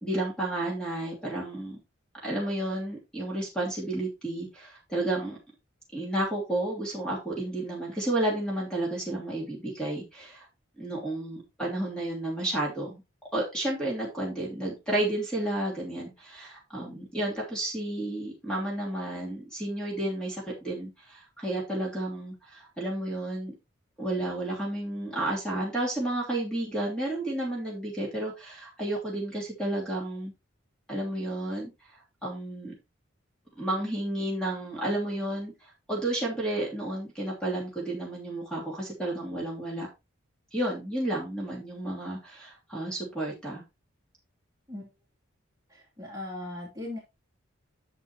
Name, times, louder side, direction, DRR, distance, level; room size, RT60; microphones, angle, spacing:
voice 1, 0.0-1.8 2.2-5.4 5.9-10.5 10.8-13.0 13.3-23.5 24.0-30.3 30.9-32.7 33.6-39.9 40.5-43.6, right 1 dB, 5° left, -4 dB, 2.9 m, -32 dB
voice 2, 45.7-47.0, left 2 dB, 15° right, -4 dB, 2.9 m, -38 dB
10.5 x 6.6 x 3.0 m, 0.24 s
head